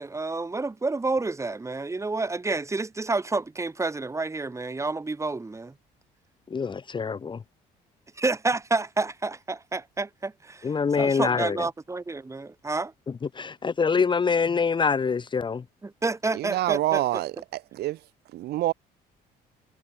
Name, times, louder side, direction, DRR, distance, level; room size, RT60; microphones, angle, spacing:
voice 1, 0.0-5.7 8.2-12.9 15.8-17.0, right 3 dB, 15° right, 4.6 m, -29 dB
voice 2, 6.5-7.4 10.6-11.7 13.3-15.6, left 5 dB, 30° left, 1.2 m, -25 dB
voice 3, 16.3-18.0 18.3-18.7, right 15 dB, 75° right, 1.5 m, -27 dB
cardioid pair, 110°, 17 cm